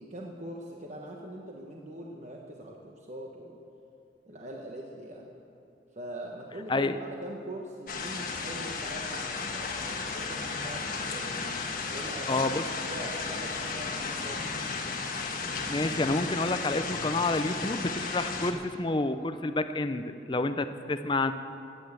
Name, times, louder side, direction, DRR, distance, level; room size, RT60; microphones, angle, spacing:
voice 1, 0.0-3.6 4.3-5.3 5.9-11.3 11.9-14.5, right 1 dB, 35° right, 0 dB, 1.1 m, -42 dB
sound 1, 7.9-18.5, left 4 dB, 45° left, 1.4 m, -34 dB
voice 2, 12.3-12.6 15.7-21.3, left 2 dB, 25° left, 10 dB, 0.5 m, -29 dB
15.5 x 9.7 x 8.0 m, 2.7 s
head